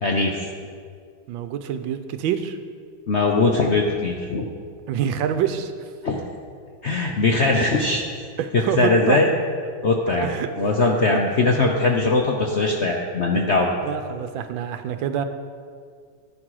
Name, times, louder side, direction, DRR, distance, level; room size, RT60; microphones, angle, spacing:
voice 1, 0.0-0.5 3.1-4.5 6.0-6.2 6.8-8.0 8.5-9.3 9.8-13.8, left 3 dB, 65° left, 1 dB, 0.6 m, -20 dB
voice 2, 1.3-2.6 4.9-5.7 7.5-7.8 8.4-9.2 10.2-10.5 13.8-15.2, right 9 dB, 75° right, 9 dB, 1.3 m, -26 dB
10.5 x 9.8 x 4.8 m, 2.1 s
omnidirectional pair, 2.2 m